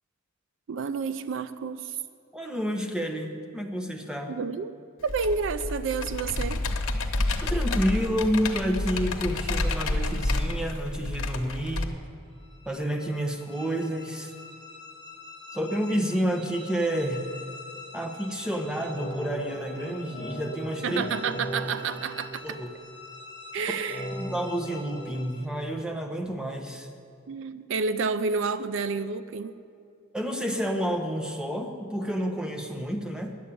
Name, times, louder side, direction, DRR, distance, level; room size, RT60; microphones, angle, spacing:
voice 1, 0.7-2.0 4.3-4.8 5.0-6.6 20.8-22.6 23.5-24.1 27.3-29.6, right 5 dB, 65° right, 13 dB, 0.4 m, -30 dB
voice 2, 2.3-4.3 7.4-12.0 12.7-14.3 15.5-17.3 17.9-21.0 22.4-22.7 23.7-23.8 24.1-26.9 30.1-33.3, equal, 5° right, 4 dB, 0.9 m, -29 dB
Computer keyboard, 5.1-11.8, left 2 dB, 85° left, 1.0 m, -29 dB
sound 1, 12.3-25.7, left 4 dB, 25° right, 1.6 m, -46 dB
sound 2, 18.7-23.0 23.8-25.0, right 1 dB, 20° left, 1.6 m, -38 dB
10.0 x 8.2 x 8.4 m, 2.6 s
head